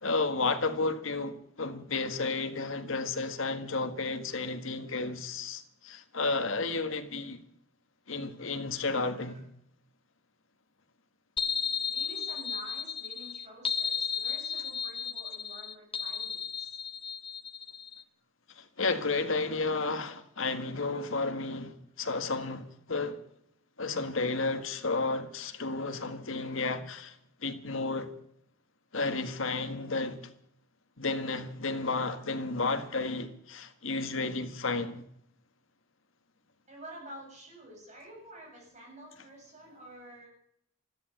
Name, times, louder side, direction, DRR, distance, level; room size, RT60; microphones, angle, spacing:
voice 1, 0.0-7.4 8.1-9.5 18.5-23.2 23.8-27.1 27.4-28.1 28.9-30.2 31.0-35.0, left 3 dB, 70° left, 1.8 m, -32 dB
sound 1, 11.4-18.0, left 7 dB, 25° left, 0.8 m, -34 dB
voice 2, 11.9-16.7 36.7-40.3, right 1 dB, 35° right, 7.7 m, -49 dB
14.0 x 12.5 x 8.0 m
head